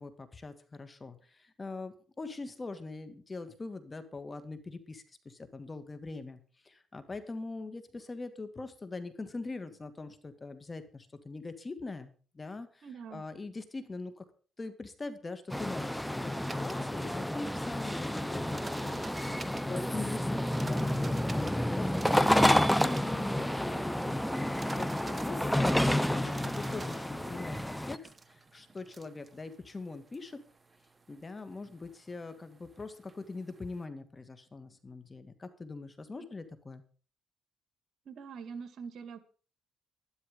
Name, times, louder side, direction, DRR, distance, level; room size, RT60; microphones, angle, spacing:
voice 1, 0.0-6.4 6.6-14.2 14.6-25.8 26.1-30.4 31.1-36.8, left 3 dB, 25° left, 10 dB, 2.2 m, -42 dB
voice 2, 12.8-13.2 36.1-36.3 38.1-39.2, right 6 dB, 65° right, 11 dB, 1.9 m, -44 dB
sound 1, 15.5-28.0, left 1 dB, 5° left, 0.8 m, -30 dB
sound 2, 16.0-33.9, right 3 dB, 25° right, 1.2 m, -51 dB
12.5 x 12.0 x 5.3 m, 0.39 s
cardioid pair, 90°, 0 cm